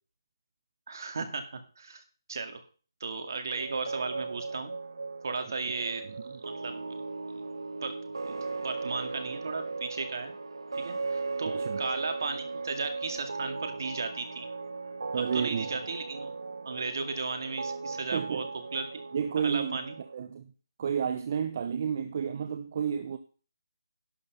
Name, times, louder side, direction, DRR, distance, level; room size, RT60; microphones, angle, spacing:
voice 1, 0.9-2.0 2.3-2.6 3.0-4.7 5.2-6.9 7.8-7.9 8.2-10.3 10.7-14.5 15.1-16.3 16.6-18.4 18.7-19.0 19.4-20.0, right 4 dB, 55° right, 2.1 m, -35 dB
sound 1, 3.5-20.2, right 3 dB, 75° right, 1.2 m, -38 dB
voice 2, 11.5-11.8 15.1-15.7 17.9-18.4 19.1-19.8 20.1-20.5 20.8-23.2, right 7 dB, 35° right, 0.7 m, -31 dB
11.0 x 6.1 x 6.8 m
hypercardioid pair, 165°, 2 cm